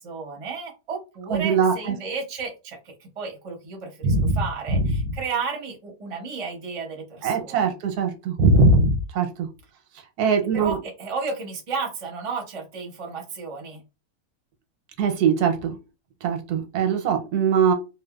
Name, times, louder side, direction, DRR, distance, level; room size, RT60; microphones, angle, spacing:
voice 1, 0.0-7.7 10.5-13.8, right 5 dB, 35° right, 0.5 m, -33 dB
voice 2, 1.3-1.9 4.0-4.4 4.7-4.8 7.2-9.5 10.2-10.8 15.0-15.8 16.2-17.7, right 4 dB, 85° right, 1.1 m, -21 dB
3.1 x 2.0 x 2.3 m
omnidirectional pair, 1.6 m